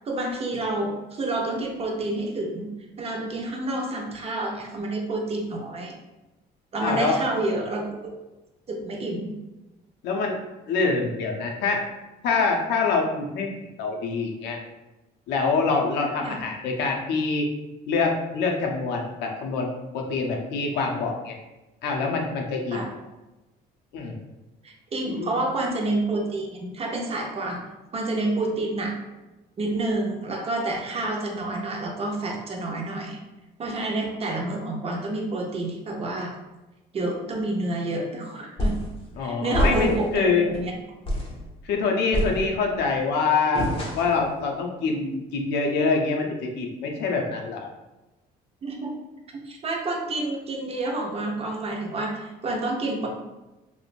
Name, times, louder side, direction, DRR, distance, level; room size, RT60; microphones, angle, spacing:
voice 1, 0.0-6.0 6.7-8.2 8.7-9.4 16.2-16.4 22.7-22.9 24.6-27.6 27.9-29.0 29.6-33.2 33.6-36.4 36.9-38.8 39.2-40.7 48.6-48.9 49.4-53.1, right 2 dB, 35° right, 0 dB, 0.6 m, -29 dB
voice 2, 6.8-7.2 10.0-10.4 10.7-11.8 12.2-13.5 13.8-14.6 15.3-17.5 17.9-21.4 21.8-22.8 23.9-24.2 25.1-25.4 39.2-40.5 41.6-43.7 43.9-47.7, left 4 dB, 85° left, 1 dB, 0.5 m, -25 dB
sound 1, 38.6-39.0 39.5-40.1 40.5-40.7 41.1-41.4 42.1-42.8 43.6-44.3, equal, 30° left, 0.6 m, -26 dB
3.0 x 2.0 x 2.4 m, 1.0 s
cardioid pair, 110°, 17 cm